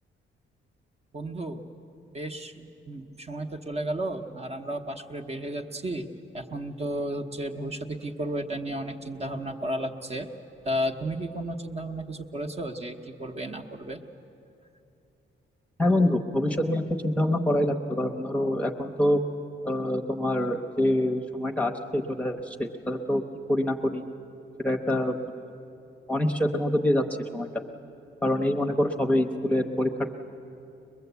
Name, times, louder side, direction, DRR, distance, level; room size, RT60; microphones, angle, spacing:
voice 1, 1.1-1.6 2.1-10.3 10.6-14.0, right 1 dB, 30° right, 4 dB, 1.0 m, -33 dB
voice 2, 15.8-19.2 19.6-23.2 23.5-24.0 24.6-25.4 26.1-27.0 27.3-27.5 28.2-30.1, left 1 dB, 5° left, 2 dB, 0.9 m, -25 dB
22.0 x 22.0 x 8.2 m, 2.8 s
wide cardioid pair, 165°, 21 cm